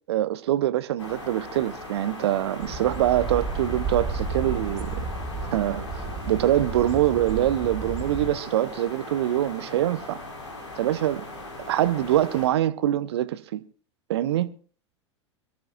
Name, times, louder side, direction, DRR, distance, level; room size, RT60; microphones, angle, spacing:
voice 1, 0.1-5.1 5.5-10.2 10.8-11.3 11.7-13.6 14.1-14.5, right 13 dB, 60° right, 0.8 m, -24 dB
sound 1, 1.0-12.5, left 2 dB, 75° left, 4.9 m, -39 dB
sound 2, 2.6-8.3, right 3 dB, 25° right, 2.6 m, -32 dB
23.5 x 14.5 x 2.4 m
figure-of-eight pair, 85°, 15 cm